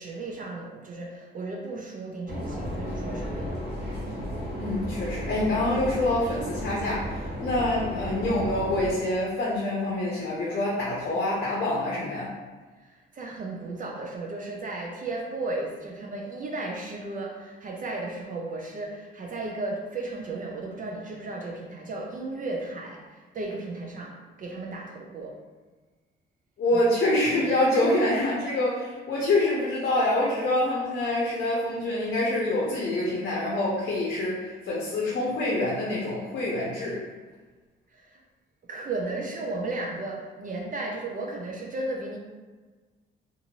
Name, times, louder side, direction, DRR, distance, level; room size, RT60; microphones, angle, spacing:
voice 1, 0.0-3.6 13.1-25.4 37.9-38.2 38.7-42.2, right 2 dB, 45° right, 0 dB, 0.5 m, -34 dB
sound 1, 2.3-8.9, equal, 60° right, 1.4 m, -34 dB
voice 2, 4.6-12.3 26.6-37.0, left 1 dB, 55° left, -5 dB, 0.7 m, -26 dB
2.6 x 2.6 x 2.9 m, 1.3 s
cardioid pair, 90°, 20 cm